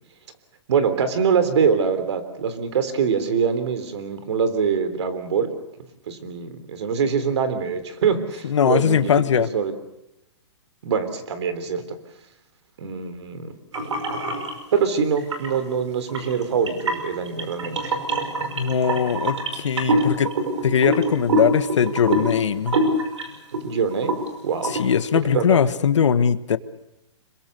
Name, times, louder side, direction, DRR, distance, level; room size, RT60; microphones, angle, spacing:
voice 1, 0.7-5.5 6.1-9.1 9.5-9.7 10.8-12.0 12.8-13.5 13.8-13.9 14.7-17.9 23.6-24.1 24.4-24.7 25.1-25.6, right 6 dB, 70° right, 11 dB, 3.5 m, -24 dB
voice 2, 8.4-9.5 18.5-20.4 20.6-22.8 24.6-26.6, left 7 dB, 85° left, 13 dB, 1.4 m, -20 dB
sound 1, 13.7-14.5 15.2-15.6 16.1-23.6 23.9-24.3 24.6-24.9, right 2 dB, 85° right, 5.6 m, -25 dB
26.5 x 22.0 x 6.9 m, 0.88 s
hypercardioid pair, 150°, 15 cm